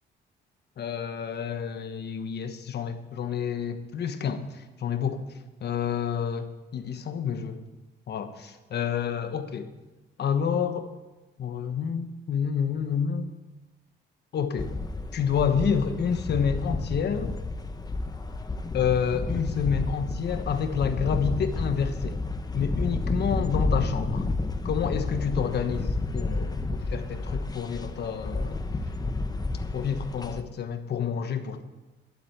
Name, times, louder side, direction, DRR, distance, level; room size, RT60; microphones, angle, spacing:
voice 1, 0.8-5.2 5.6-7.6 8.1-9.7 10.2-10.9 11.4-13.3 14.3-14.7 15.1-17.4 18.7-22.2 22.5-24.3 24.6-28.6 29.7-31.6, left 7 dB, 60° left, 8 dB, 1.3 m, -29 dB
sound 1, 14.6-30.4, left 2 dB, 20° left, 0.9 m, -31 dB
12.0 x 8.0 x 8.0 m, 1.1 s
cardioid pair, 110°, 19 cm